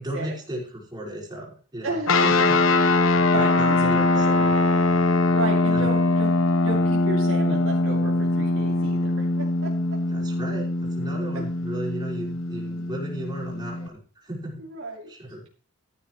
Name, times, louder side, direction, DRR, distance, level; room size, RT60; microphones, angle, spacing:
voice 1, 0.0-2.8 3.2-4.3 5.7-5.9 6.7-6.8 10.1-14.6 15.1-15.4, right 1 dB, 20° right, -4 dB, 5.2 m, -35 dB
voice 2, 1.8-2.2 3.3-4.6 5.3-6.3 6.6-9.7 11.3-11.4 14.6-15.1, right 2 dB, 80° right, -2 dB, 2.7 m, -32 dB
sound 1, 2.1-13.9, left 2 dB, 80° left, 1.1 m, -22 dB
14.0 x 10.5 x 3.2 m, 0.41 s
head